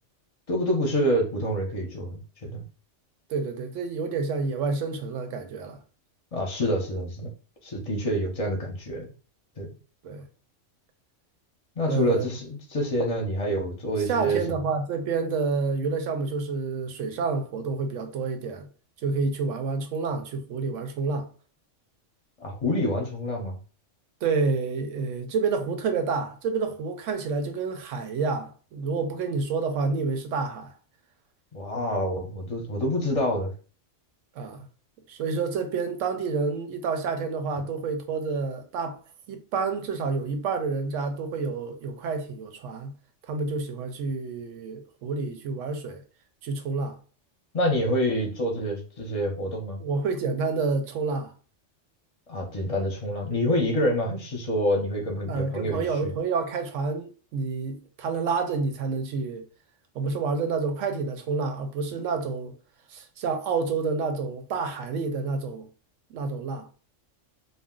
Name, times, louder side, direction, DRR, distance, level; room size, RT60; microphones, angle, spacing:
voice 1, 0.5-2.6 6.3-7.3 7.6-9.1 9.6-9.7 11.8-14.6 22.4-23.6 31.5-33.5 47.5-49.8 52.3-56.1, equal, 35° left, 0.6 m, -27 dB
voice 2, 3.3-5.8 10.0-10.3 11.9-12.3 14.1-18.7 19.0-21.3 24.2-30.7 34.4-34.7 35.1-39.0 39.3-43.0 43.3-46.0 46.4-47.0 49.8-51.3 55.3-59.4 59.9-62.5 62.9-65.7 66.1-66.7, right 4 dB, 90° right, 0.9 m, -29 dB
2.5 x 2.0 x 3.6 m
omnidirectional pair, 1.3 m